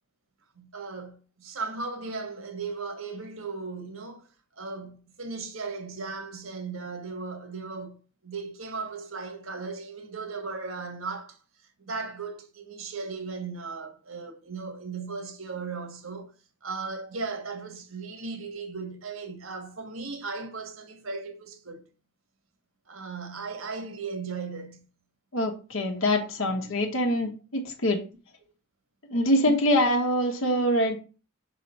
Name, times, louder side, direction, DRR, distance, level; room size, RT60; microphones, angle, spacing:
voice 1, 0.5-4.3 4.6-11.4 11.8-16.3 16.6-21.8 22.9-24.8, right 4 dB, 90° right, 1.4 m, -37 dB
voice 2, 25.3-28.0 29.1-31.0, left 1 dB, 80° left, 1.1 m, -24 dB
5.8 x 3.7 x 5.3 m
head